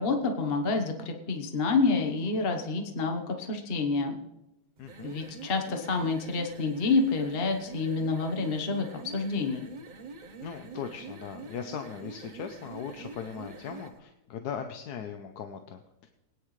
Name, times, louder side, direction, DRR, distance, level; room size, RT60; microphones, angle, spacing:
voice 1, 0.0-4.2 5.0-9.7, left 3 dB, 40° left, 4 dB, 1.3 m, -28 dB
voice 2, 4.8-5.1 10.4-16.1, left 7 dB, 75° left, 6 dB, 1.3 m, -39 dB
sound 1, 4.8-14.0, right 3 dB, 40° right, 0.7 m, -45 dB
20.5 x 9.9 x 3.2 m, 0.91 s
omnidirectional pair, 1.7 m